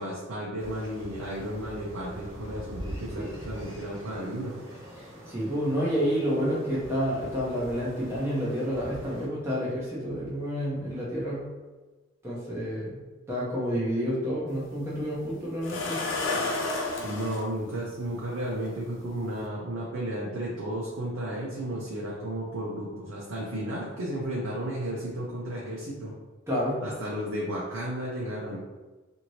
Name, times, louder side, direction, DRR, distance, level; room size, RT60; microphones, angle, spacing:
voice 1, 0.0-4.6 17.0-26.1 26.8-28.6, right 1 dB, 85° right, -4 dB, 0.6 m, -33 dB
sound 1, 0.6-9.3, equal, 65° right, 1.1 m, -43 dB
voice 2, 5.3-11.4 12.2-13.0 13.3-16.0 26.5-26.8, equal, 15° right, -7 dB, 0.6 m, -29 dB
sound 2, 14.5-14.6 15.6-17.4 18.7-18.8 19.3-19.4, left 2 dB, 65° left, 0.5 m, -30 dB
2.8 x 2.6 x 3.0 m, 1.2 s
head